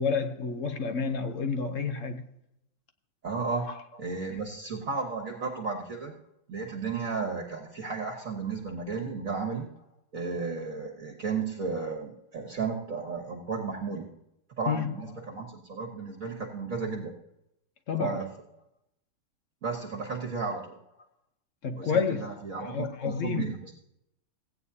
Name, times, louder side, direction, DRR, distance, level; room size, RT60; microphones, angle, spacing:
voice 1, 0.0-2.3 3.6-3.7 14.7-14.9 17.9-18.2 21.6-22.3 22.6-23.6, left 5 dB, 60° left, 0.8 m, -29 dB
voice 2, 3.2-3.7 4.0-6.1 6.5-9.7 10.1-14.1 14.6-17.1 18.0-18.3 19.6-20.7 21.7-23.7, right 4 dB, 45° right, 1.5 m, -34 dB
16.0 x 9.2 x 2.7 m
omnidirectional pair, 2.2 m